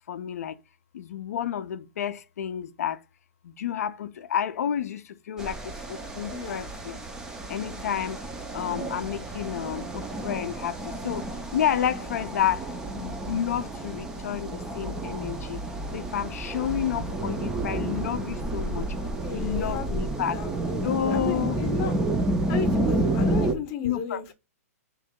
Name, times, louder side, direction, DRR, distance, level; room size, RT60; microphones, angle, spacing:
voice 1, 0.1-0.5 0.9-3.0 3.4-5.6 5.9-7.0 7.5-8.2 8.5-11.3 11.5-12.6 12.9-15.6 15.9-18.9 19.3-20.4 20.8-21.6 23.8-24.3, left 9 dB, 70° left, 0.4 m, -30 dB
sound 1, 5.4-23.5, right 2 dB, 5° right, 0.4 m, -30 dB
voice 2, 6.3-6.7 19.2-19.9 20.2-21.9 22.5-24.3, left 6 dB, 30° left, 0.7 m, -34 dB
3.0 x 2.8 x 3.5 m
hypercardioid pair, 160°, 8 cm